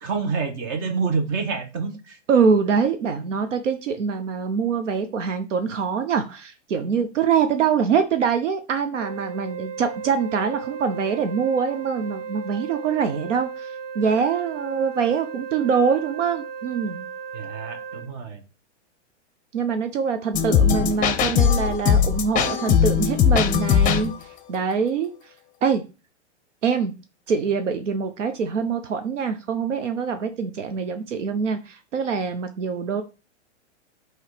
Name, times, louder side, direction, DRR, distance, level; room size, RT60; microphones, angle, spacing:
voice 1, 0.0-2.2 17.3-18.4, right 5 dB, 40° right, 1.6 m, -27 dB
voice 2, 2.3-13.7 13.9-17.1 19.5-24.1 24.5-25.1 25.6-25.9 26.6-26.9 27.3-33.0, right 6 dB, 80° right, 0.9 m, -24 dB
Wind instrument woodwind instrument, 9.0-18.1, right 6 dB, 20° right, 0.5 m, -35 dB
sound 1, 20.3-24.2, left 8 dB, 20° left, 0.7 m, -19 dB
7.5 x 3.2 x 5.0 m
hypercardioid pair, 120°, 36 cm